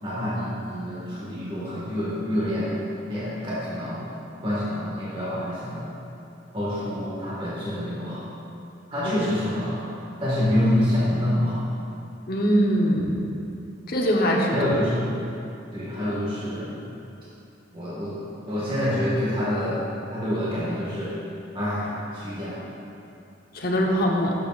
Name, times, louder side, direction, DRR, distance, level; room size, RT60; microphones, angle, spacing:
voice 1, 0.0-2.8 3.1-4.1 4.4-5.9 6.5-8.2 8.9-9.8 10.2-11.6 14.5-15.2 15.7-16.7 17.7-18.2 18.5-19.8 20.1-21.1 21.5-21.9 22.1-22.6, left 1 dB, 30° right, -9 dB, 1.7 m, -27 dB
voice 2, 12.3-13.2 13.9-14.7 23.5-24.3, equal, 55° left, -1 dB, 1.0 m, -22 dB
11.5 x 7.1 x 2.5 m, 2.7 s
head